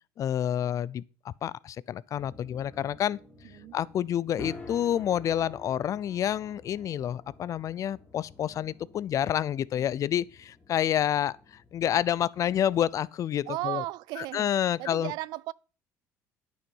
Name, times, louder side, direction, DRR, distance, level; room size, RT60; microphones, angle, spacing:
voice 1, 0.2-3.2 3.7-13.8 14.2-15.1, left 10 dB, 50° left, 0.4 m, -29 dB
sound 1, 2.1-13.1, left 2 dB, 15° left, 2.3 m, -50 dB
voice 2, 3.4-3.8 13.5-14.5 14.8-15.5, right 18 dB, 70° right, 0.4 m, -35 dB
9.8 x 6.2 x 5.4 m
supercardioid pair, 90°, 7 cm